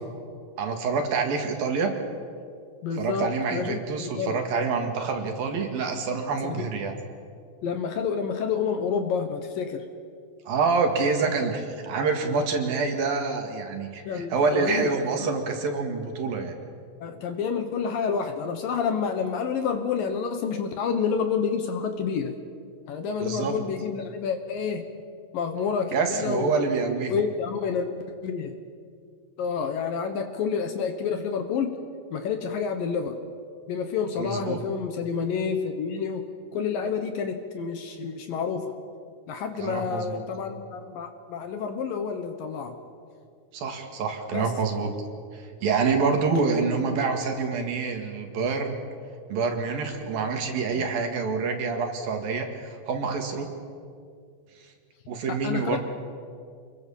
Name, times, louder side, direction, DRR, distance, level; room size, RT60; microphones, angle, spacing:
voice 1, 0.6-2.0 3.0-6.9 10.5-16.5 23.2-23.5 25.9-27.2 34.2-34.6 39.6-40.2 43.5-44.9 45.3-48.8 49.3-53.5 55.1-55.8, right 4 dB, 60° right, 4 dB, 3.5 m, -27 dB
voice 2, 2.8-4.4 6.4-6.7 7.6-9.8 11.0-11.2 14.1-14.9 15.2-15.3 17.0-22.3 22.9-24.8 25.3-26.5 27.1-27.9 28.2-28.5 29.4-31.8 32.1-33.2 33.7-38.7 39.3-42.8 44.3-44.5 50.7-50.9 55.3-55.8, left 6 dB, 65° left, 7 dB, 2.6 m, -29 dB
28.0 x 22.0 x 7.2 m, 2.2 s
omnidirectional pair, 4.9 m